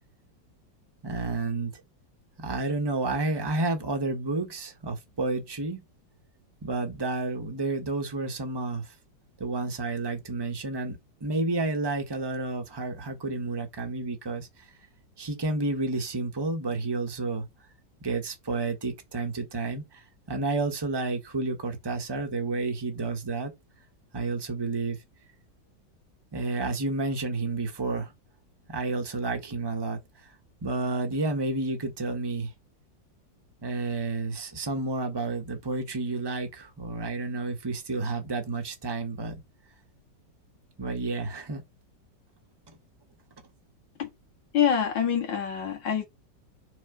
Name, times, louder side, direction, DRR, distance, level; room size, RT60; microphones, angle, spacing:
voice 1, 1.0-1.7 2.4-5.8 6.6-8.9 9.4-14.7 15.2-17.5 18.0-23.5 24.1-25.0 26.3-28.1 28.7-30.3 30.6-32.5 33.6-39.4 40.8-41.6 42.7-42.8, right 3 dB, 15° right, 1.3 m, -30 dB
voice 2, 44.5-46.0, left 8 dB, 80° left, 2.5 m, -25 dB
5.2 x 4.3 x 5.2 m
omnidirectional pair, 2.0 m